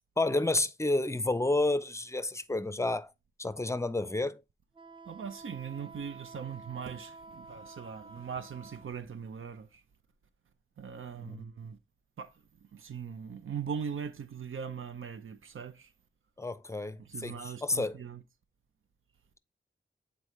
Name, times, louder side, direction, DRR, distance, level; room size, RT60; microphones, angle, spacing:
voice 1, 0.2-3.1 3.4-4.4 11.1-11.5 16.4-18.0, left 2 dB, 15° left, 0.5 m, -30 dB
Wind instrument woodwind instrument, 4.7-8.9, right 3 dB, 25° right, 0.8 m, -50 dB
voice 2, 5.1-9.8 10.8-11.8 12.2-12.3 12.7-15.9 17.0-18.2, right 7 dB, 90° right, 0.6 m, -40 dB
8.1 x 4.1 x 3.0 m
wide cardioid pair, 60°, 20 cm